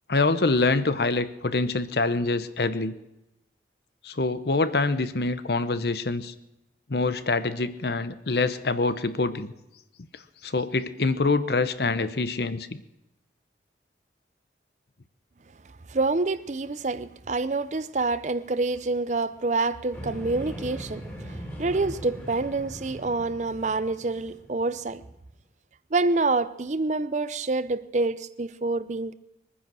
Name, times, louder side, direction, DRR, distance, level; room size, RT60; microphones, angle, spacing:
voice 1, 0.1-2.9 4.0-6.3 6.9-9.5 10.4-12.8, left 3 dB, 65° left, 0.9 m, -25 dB
voice 2, 15.9-21.0 21.6-25.0 25.9-29.1, right 3 dB, 40° right, 0.5 m, -27 dB
sound 1, 19.9-25.2, equal, 10° left, 3.1 m, -40 dB
22.0 x 9.9 x 6.2 m
head